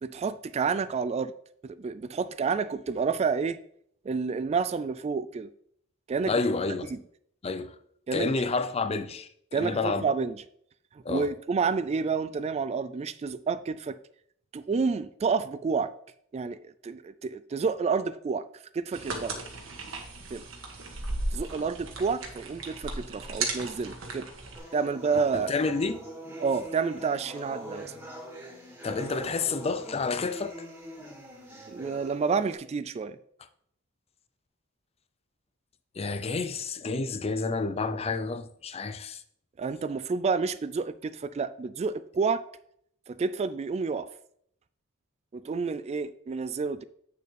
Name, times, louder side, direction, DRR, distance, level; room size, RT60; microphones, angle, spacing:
voice 1, 0.0-1.3 1.6-3.6 4.1-5.5 6.1-6.3 8.1-8.3 9.5-10.4 11.1-14.0 14.5-15.9 16.3-18.5 18.7-19.4 20.3-20.4 21.3-24.3 24.7-25.5 26.4-27.9 31.7-33.2 39.6-42.4 43.1-44.1 45.3-46.8, right 5 dB, 30° right, 0.3 m, -29 dB
voice 2, 6.3-6.9 7.4-7.8 8.1-10.1 11.0-11.3 25.3-26.0 28.8-30.5 36.0-39.2, left 3 dB, 30° left, 0.5 m, -29 dB
sound 1, 18.9-24.6, right 3 dB, 70° right, 1.5 m, -36 dB
sound 2, 24.6-32.5, right 1 dB, 10° right, 1.9 m, -43 dB
8.5 x 6.6 x 3.3 m
head